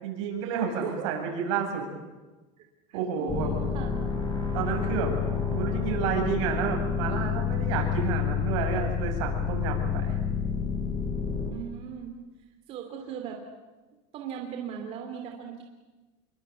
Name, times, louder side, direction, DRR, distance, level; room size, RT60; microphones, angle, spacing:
voice 1, 0.0-1.8 2.9-3.5 4.5-5.1 5.5-10.2, right 6 dB, 75° right, 2 dB, 7.7 m, -30 dB
voice 2, 0.6-1.1 2.9-4.0 11.5-12.1 12.7-13.4 14.1-15.6, right 8 dB, 40° right, 3 dB, 3.0 m, -38 dB
sound 1, 3.3-11.5, left 6 dB, 25° left, 4.3 m, -29 dB
27.5 x 23.5 x 8.4 m, 1.2 s
cardioid pair, 165°, 16 cm